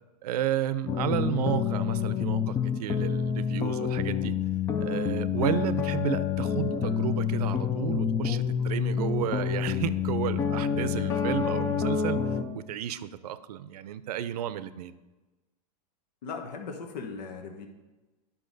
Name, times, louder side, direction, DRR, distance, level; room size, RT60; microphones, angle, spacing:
voice 1, 0.2-4.4 4.8-12.2 12.5-14.9, right 11 dB, 70° right, 14 dB, 0.6 m, -32 dB
sound 1, 0.9-12.4, left 7 dB, 15° left, 0.4 m, -28 dB
voice 2, 16.2-17.7, left 5 dB, 80° left, 4 dB, 1.2 m, -38 dB
10.5 x 5.8 x 4.0 m, 1.2 s
supercardioid pair, 155°, 21 cm